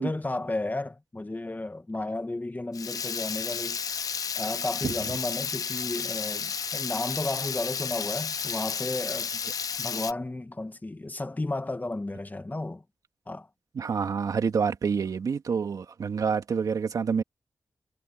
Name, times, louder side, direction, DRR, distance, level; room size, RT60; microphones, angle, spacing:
voice 1, 0.0-3.8 4.4-9.3 9.8-12.8 13.3-13.5, left 2 dB, 30° left, 2.1 m, -33 dB
Water tap faucet / Liquid, 2.7-10.1, left 6 dB, 70° left, 1.0 m, -32 dB
voice 2, 13.7-17.2, right 6 dB, 75° right, 2.4 m, -27 dB
supercardioid pair, 40°, 6 cm